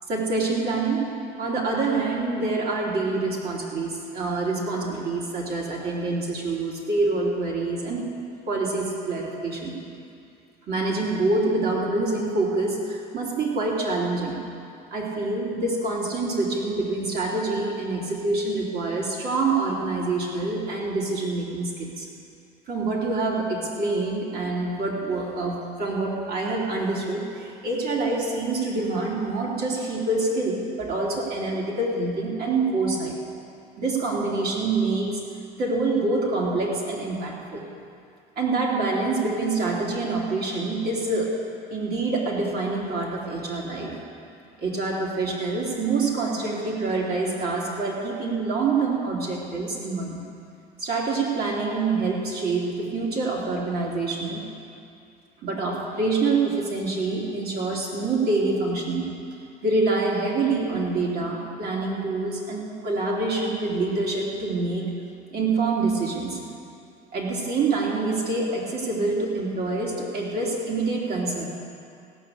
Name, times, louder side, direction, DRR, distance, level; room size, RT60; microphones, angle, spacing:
voice 1, 0.1-8.1 8.5-9.8 10.7-14.4 14.9-22.1 22.7-33.2 33.8-35.2 35.6-37.6 38.4-44.0 44.6-50.2 50.8-54.5 55.4-59.2 59.6-64.9 65.3-66.4 67.1-71.4, right 3 dB, 50° right, -3 dB, 3.3 m, -26 dB
16.5 x 6.5 x 8.5 m, 2.5 s
supercardioid pair, 90°, 21 cm